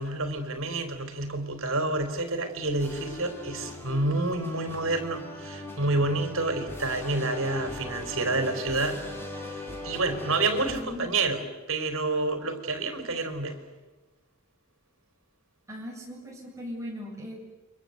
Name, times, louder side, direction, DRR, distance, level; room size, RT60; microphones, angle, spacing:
voice 1, 0.0-9.0 9.3-11.4 11.7-13.6, right 2 dB, 65° right, 7 dB, 4.1 m, -29 dB
sound 1, 2.8-10.8, left 1 dB, 10° left, 4.5 m, -40 dB
voice 2, 10.4-11.2 15.7-17.3, left 1 dB, 15° right, -2 dB, 7.8 m, -39 dB
29.0 x 24.5 x 8.1 m, 1.2 s
head